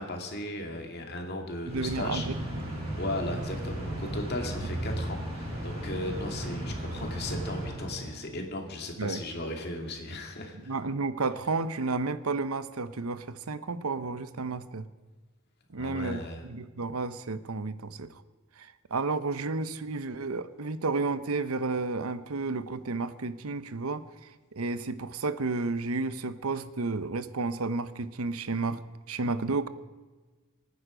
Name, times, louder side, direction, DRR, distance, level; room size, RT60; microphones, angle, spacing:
voice 1, 0.0-2.3 3.0-10.7 15.7-16.4, left 1 dB, 50° left, 3 dB, 2.3 m, -36 dB
sound 1, 1.7-8.5, right 1 dB, 30° right, 5.8 m, -35 dB
voice 2, 1.7-2.6 9.0-9.2 10.7-14.9 15.7-18.1 18.6-24.0 24.5-29.7, right 3 dB, 90° right, 14 dB, 0.8 m, -32 dB
25.0 x 9.6 x 5.1 m, 1.3 s
head